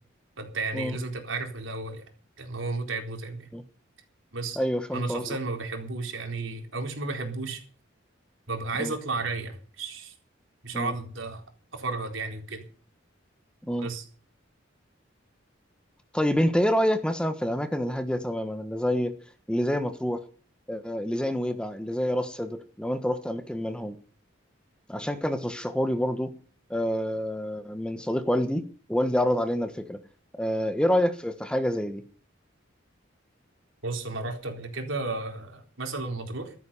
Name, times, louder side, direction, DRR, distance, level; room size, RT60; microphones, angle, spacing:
voice 1, 0.4-2.0 2.4-3.5 4.3-4.6 4.9-7.6 8.5-10.1 10.6-11.4 11.7-12.6 13.8-14.0 33.8-36.5, right 3 dB, 85° right, 3 dB, 4.2 m, -33 dB
voice 2, 4.6-5.4 8.8-8.9 10.7-10.9 13.7-13.9 16.1-19.1 19.5-20.2 20.7-24.0 24.9-26.3 26.7-28.6 28.9-30.0 30.4-32.0, equal, 5° left, 9 dB, 1.3 m, -27 dB
14.5 x 13.5 x 5.6 m, 0.42 s
head